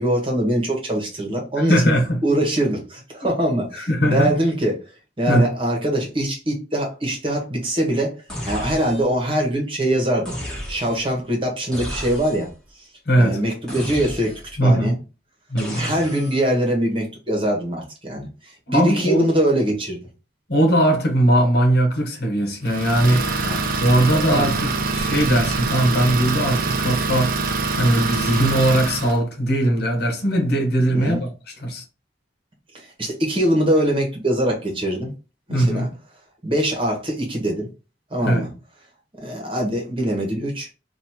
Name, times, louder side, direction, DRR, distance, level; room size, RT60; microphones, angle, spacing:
voice 1, 0.0-1.8 2.2-4.8 5.2-8.1 8.5-10.3 10.7-12.5 13.2-14.3 14.6-15.0 15.7-18.3 18.7-20.0 23.4-23.6 24.3-24.5 30.9-31.2 33.0-35.1 35.5-35.9 36.4-37.7 38.1-38.5 39.2-40.7, right 1 dB, 30° right, 1.4 m, -22 dB
voice 2, 1.7-2.2 3.9-4.3 5.3-5.5 13.1-13.4 14.6-14.9 15.5-15.8 18.7-19.3 20.5-23.2 23.8-27.4 27.7-31.3 31.6-31.8 35.5-35.9 38.2-38.5, right 1 dB, 60° left, 1.2 m, -19 dB
sound 1, 8.3-9.2 10.2-11.1 11.7-12.6 13.7-14.6 15.6-16.5, equal, 5° left, 1.4 m, -33 dB
Idling, 22.7-29.2, right 3 dB, 55° right, 0.6 m, -24 dB
3.2 x 2.7 x 4.2 m
head